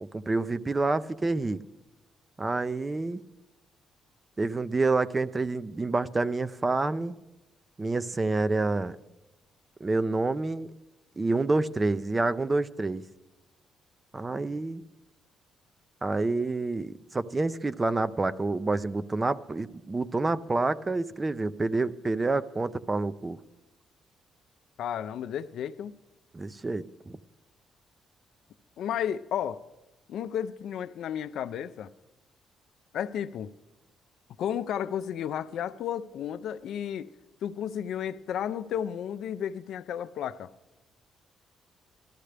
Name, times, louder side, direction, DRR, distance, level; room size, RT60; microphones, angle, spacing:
voice 1, 0.0-1.6 2.4-3.2 4.4-7.1 7.8-9.0 9.8-10.7 11.2-13.0 14.1-14.8 16.0-23.4 26.3-27.2, right 3 dB, 25° right, 14 dB, 0.5 m, -28 dB
voice 2, 24.8-25.9 28.8-29.6 30.1-31.9 32.9-33.5 34.4-37.1 37.4-40.5, left 9 dB, 75° left, 11 dB, 0.5 m, -33 dB
17.5 x 13.5 x 3.4 m, 1.0 s
cardioid pair, 90°, 0 cm